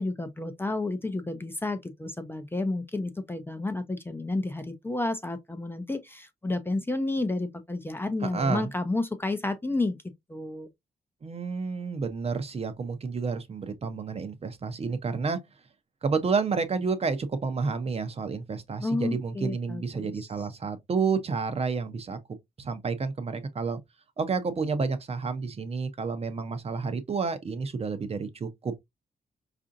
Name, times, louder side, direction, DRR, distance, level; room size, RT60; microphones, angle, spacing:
voice 1, 0.0-10.0 10.3-10.7 18.8-20.1, left 2 dB, 15° left, 0.5 m, -31 dB
voice 2, 8.2-8.7 11.2-15.4 16.0-22.2 22.6-23.8 24.2-28.7, right 4 dB, 40° right, 0.6 m, -30 dB
4.7 x 2.5 x 2.6 m
wide cardioid pair, 125°, 16 cm